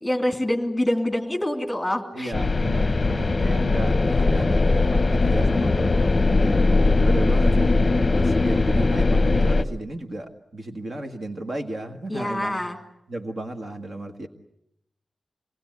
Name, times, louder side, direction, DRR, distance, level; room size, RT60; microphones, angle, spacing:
voice 1, 0.0-2.3 5.5-5.7 12.1-12.8, left 1 dB, 5° left, 4 dB, 2.9 m, -26 dB
voice 2, 2.1-6.6 7.0-7.8 8.1-12.6 13.1-14.3, right 1 dB, 40° right, 5 dB, 1.7 m, -34 dB
sound 1, 2.3-9.6, left 3 dB, 30° left, 0.9 m, -20 dB
27.0 x 19.5 x 9.5 m, 0.81 s
wide cardioid pair, 160°, 0 cm